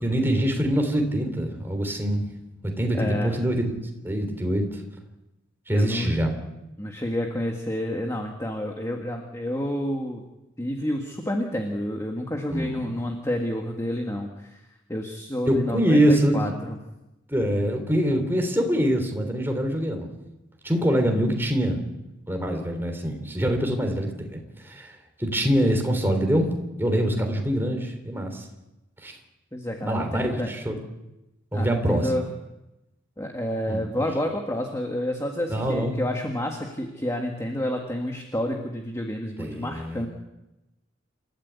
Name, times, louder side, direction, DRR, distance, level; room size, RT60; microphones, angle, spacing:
voice 1, 0.0-2.2 2.6-3.7 4.0-4.8 5.7-6.3 12.5-13.0 15.4-16.5 17.3-20.1 20.6-21.8 22.3-26.5 26.8-28.5 29.0-29.2 29.8-30.7 31.5-32.1 33.7-34.1 35.5-36.0 39.4-40.1, equal, 10° right, 3 dB, 3.6 m, -24 dB
voice 2, 2.9-3.4 5.7-6.2 6.8-10.2 10.6-14.6 14.9-16.8 29.5-30.5 31.5-32.3 33.2-40.1, left 1 dB, 15° left, 2 dB, 1.8 m, -29 dB
28.0 x 14.0 x 8.3 m, 0.97 s
head